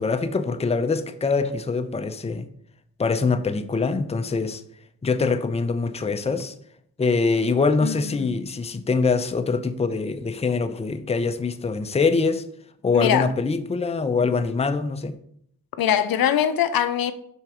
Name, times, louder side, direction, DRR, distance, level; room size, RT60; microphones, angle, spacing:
voice 1, 0.0-2.5 3.0-4.6 5.0-6.5 7.0-12.4 12.8-15.1, left 4 dB, 20° left, 0.5 m, -24 dB
voice 2, 7.8-8.4 12.9-13.3 15.8-17.1, left 9 dB, 80° left, 0.5 m, -22 dB
5.4 x 3.6 x 4.9 m
cardioid pair, 55°, 35 cm